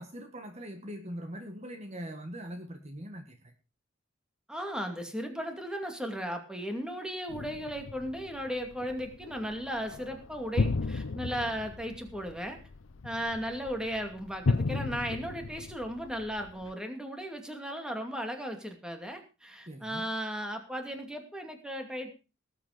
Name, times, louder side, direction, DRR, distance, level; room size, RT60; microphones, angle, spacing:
voice 1, 0.0-3.5 19.7-20.0, equal, 35° right, 6 dB, 1.6 m, -42 dB
voice 2, 4.5-12.6 13.0-22.1, equal, 5° right, 4 dB, 2.4 m, -36 dB
sound 1, 7.3-16.7, left 3 dB, 70° left, 0.7 m, -35 dB
19.0 x 8.5 x 5.1 m, 0.32 s
head